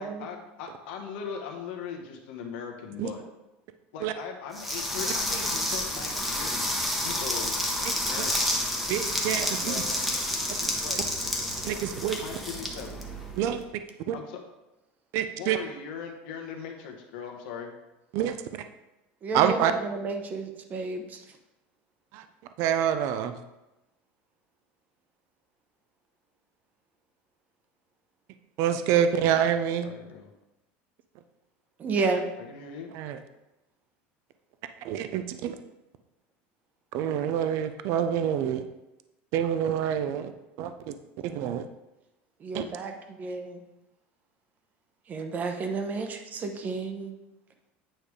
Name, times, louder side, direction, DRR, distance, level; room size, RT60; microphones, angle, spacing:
voice 1, 0.0-3.2 3.9-8.6 9.6-10.1 10.8-11.0 12.2-13.0 14.1-14.4 15.4-17.7 29.8-30.3 31.9-32.9, left 6 dB, 75° left, 2 dB, 1.3 m, -40 dB
sound 1, 4.5-13.5, left 1 dB, ahead, 1.0 m, -30 dB
voice 2, 8.9-9.7 10.6-10.7 11.6-12.2 13.4-14.1 15.1-15.6 18.1-18.4 19.3-19.7 22.1-22.3 22.6-23.4 28.6-29.9 32.9-33.2 34.8-35.6 36.9-38.6 39.3-40.3 40.6-40.9 41.2-41.7 42.5-42.6, right 9 dB, 55° right, 9 dB, 0.4 m, -27 dB
voice 3, 19.2-21.2 31.8-32.2 42.4-43.6 45.1-47.1, right 4 dB, 30° right, 6 dB, 0.8 m, -31 dB
8.9 x 3.3 x 5.0 m, 0.98 s
supercardioid pair, 140°, 6 cm